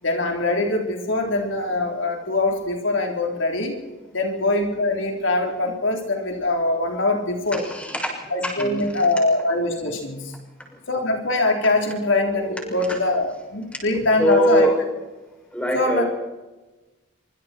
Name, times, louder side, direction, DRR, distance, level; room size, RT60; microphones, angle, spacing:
voice 1, 0.0-3.8 4.1-7.6 8.3-10.3 10.9-14.7 15.7-16.0, left 2 dB, 80° left, 2 dB, 4.0 m, -23 dB
voice 2, 7.5-8.1 8.4-8.9 12.4-13.0 14.2-14.8 15.5-16.1, right 1 dB, 5° left, 0 dB, 6.9 m, -22 dB
25.5 x 25.5 x 4.6 m, 1.1 s
head